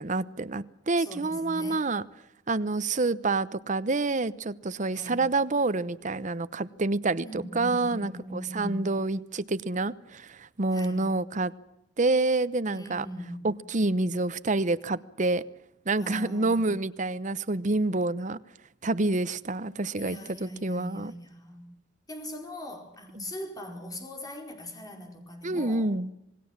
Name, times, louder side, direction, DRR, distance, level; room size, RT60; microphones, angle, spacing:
voice 1, 0.0-2.0 2.5-11.5 12.0-13.1 13.4-15.4 15.8-18.4 18.8-21.1 23.2-23.3 25.4-26.1, right 2 dB, 40° right, 15 dB, 0.9 m, -28 dB
voice 2, 1.0-1.9 4.9-5.2 7.2-8.9 10.7-11.1 12.7-13.5 16.0-16.7 20.0-21.7 22.1-25.9, equal, 20° left, 3 dB, 4.8 m, -40 dB
27.0 x 19.5 x 7.4 m, 0.85 s
head